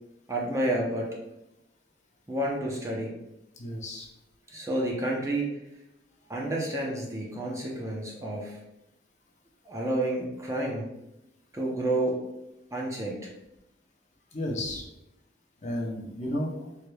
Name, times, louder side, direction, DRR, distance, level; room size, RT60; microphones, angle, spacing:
voice 1, 0.3-1.1 2.3-3.1 4.5-5.6 6.3-8.6 9.6-10.9 11.5-12.2 12.7-13.3, right 1 dB, 15° right, -2 dB, 0.6 m, -30 dB
voice 2, 3.6-4.1 14.3-14.8 15.6-16.7, left 1 dB, 40° left, -1 dB, 0.7 m, -33 dB
4.8 x 3.1 x 2.2 m, 0.90 s
head